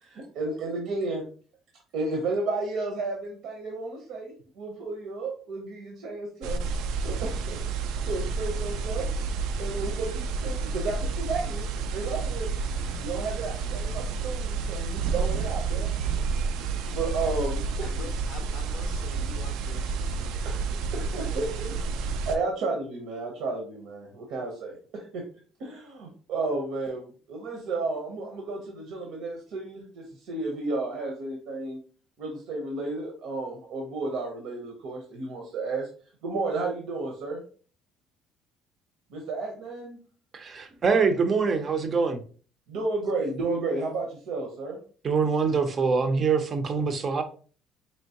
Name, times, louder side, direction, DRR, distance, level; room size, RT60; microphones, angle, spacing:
voice 1, 0.0-1.3 1.9-6.6 7.0-7.6 8.0-9.1 9.6-11.7 11.9-12.5 13.0-15.9 16.9-17.9 20.4-20.6 20.9-21.7 22.3-25.2 25.6-27.0 27.3-31.8 32.2-35.9 36.2-37.4 39.1-40.0 42.7-44.8, right 3 dB, 65° right, 0.8 m, -32 dB
sound 1, 6.4-22.4, right 4 dB, 85° right, 0.4 m, -30 dB
voice 2, 17.8-20.6 20.9-21.4, left 6 dB, 55° left, 0.4 m, -46 dB
voice 3, 40.3-42.2 45.0-47.2, right 5 dB, 25° right, 0.5 m, -24 dB
4.4 x 2.9 x 2.9 m
cardioid pair, 175°, 0 cm